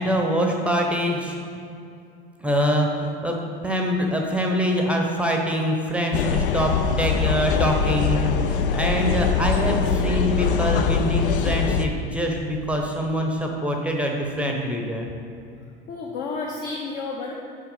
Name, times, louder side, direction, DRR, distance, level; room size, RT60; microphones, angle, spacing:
voice 1, 0.0-1.4 2.4-3.4 3.6-15.1, equal, 5° right, 1 dB, 0.7 m, -24 dB
sound 1, 6.1-11.9, left 6 dB, 65° left, 0.5 m, -22 dB
voice 2, 15.9-17.3, left 4 dB, 45° left, -1 dB, 0.9 m, -31 dB
5.8 x 4.8 x 5.5 m, 2.5 s
figure-of-eight pair, 80°, 29 cm